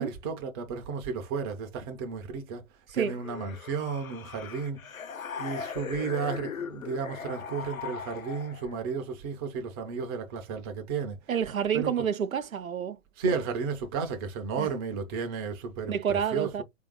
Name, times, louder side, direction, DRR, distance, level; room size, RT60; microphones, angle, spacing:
voice 1, 0.0-2.6 2.9-5.0 5.4-11.2 11.7-11.9 13.2-15.9 16.3-16.6, right 5 dB, 20° right, 0.4 m, -33 dB
sound 1, 3.0-8.8, left 7 dB, 85° left, 0.6 m, -39 dB
voice 2, 11.3-13.0 14.6-14.7 15.9-16.6, right 8 dB, 85° right, 0.6 m, -29 dB
3.3 x 2.6 x 3.0 m
figure-of-eight pair, 115°, 40 cm